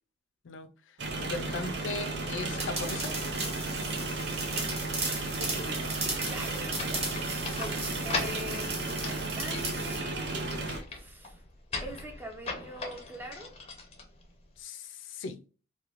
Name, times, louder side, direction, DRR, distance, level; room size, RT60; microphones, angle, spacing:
sound 1, 1.0-10.8, right 3 dB, 65° right, 0.6 m, -34 dB
voice 1, 1.2-3.1 5.4-5.7 14.6-15.4, left 3 dB, 80° left, 0.5 m, -38 dB
sound 2, 2.6-10.0, right 2 dB, 30° right, 1.0 m, -37 dB
voice 2, 6.2-10.6 10.9-11.4 11.8-13.5, right 1 dB, 10° right, 0.6 m, -43 dB
sound 3, 6.8-14.6, left 4 dB, 30° left, 0.6 m, -40 dB
3.0 x 2.3 x 2.4 m
head